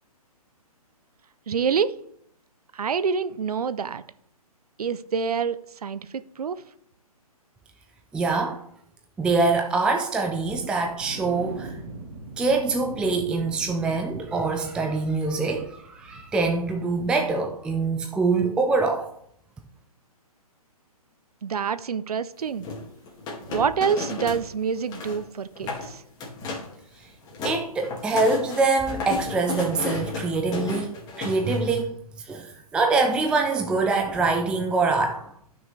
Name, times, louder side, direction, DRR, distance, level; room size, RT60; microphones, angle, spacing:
voice 1, 1.5-2.0 2.7-4.0 4.8-6.6 21.4-22.7 23.5-26.0, right 6 dB, 75° right, 0.7 m, -27 dB
voice 2, 8.1-8.6 9.2-11.7 12.4-19.1 27.4-32.0 32.3-35.3, right 3 dB, 5° right, 0.5 m, -24 dB
sound 1, 10.5-18.2 18.5-18.7 19.1-19.2, right 2 dB, 35° right, 1.7 m, -42 dB
sound 2, 22.6-24.5 24.7-25.2 25.6-25.9 26.2-26.7 27.1-31.8, left 3 dB, 20° left, 2.3 m, -33 dB
13.5 x 6.2 x 3.4 m
hypercardioid pair, 140°, 19 cm